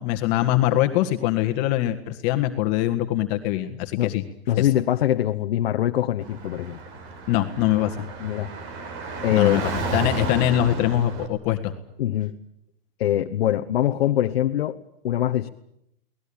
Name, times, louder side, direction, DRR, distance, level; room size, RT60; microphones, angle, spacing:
voice 1, 0.0-4.2 4.6-4.7 7.3-8.0 9.3-11.7, left 14 dB, 45° left, 7 dB, 1.8 m, -23 dB
voice 2, 4.5-6.8 8.2-8.5 9.2-9.6 12.0-12.4 13.0-14.8 15.0-15.5, left 12 dB, 75° left, 6 dB, 1.2 m, -23 dB
Car / Traffic noise roadway noise, 6.2-11.3, right 3 dB, 40° right, 4.8 m, -32 dB
23.5 x 19.0 x 8.8 m, 0.78 s
hypercardioid pair, 135°, 30 cm